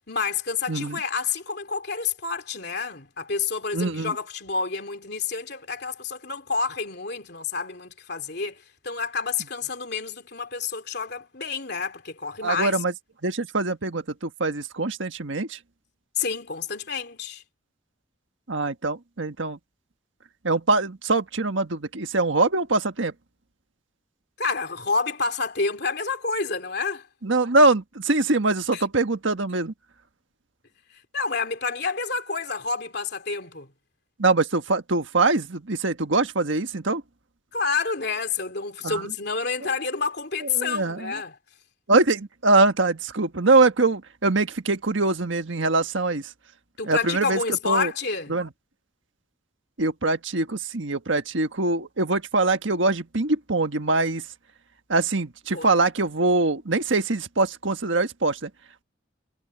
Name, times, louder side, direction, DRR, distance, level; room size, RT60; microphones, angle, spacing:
voice 1, 0.1-12.8 16.2-17.4 24.4-27.1 28.7-28.8 31.1-33.7 37.5-41.4 46.8-48.4 55.5-55.7, left 5 dB, 55° left, 3.1 m, -29 dB
voice 2, 0.7-1.0 3.7-4.1 12.4-12.9 13.2-15.6 18.5-19.6 20.4-23.1 27.2-29.7 34.2-37.0 38.8-39.0 40.5-41.1 41.9-46.2 46.8-47.4 47.6-47.9 48.3-48.5 49.8-54.2 54.9-58.5, right 3 dB, 70° right, 1.5 m, -23 dB
head